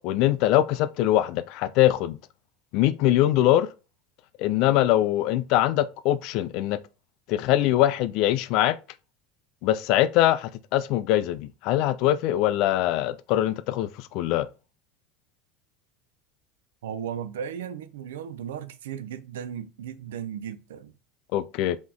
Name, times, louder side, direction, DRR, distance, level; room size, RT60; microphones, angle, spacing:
voice 1, 0.0-2.2 2.7-3.7 4.4-6.8 7.3-8.8 9.6-14.5 21.3-21.8, left 13 dB, 60° left, 0.4 m, -23 dB
voice 2, 16.8-20.9, right 8 dB, 80° right, 0.4 m, -36 dB
3.8 x 3.0 x 3.7 m
hypercardioid pair, 85°, 0 cm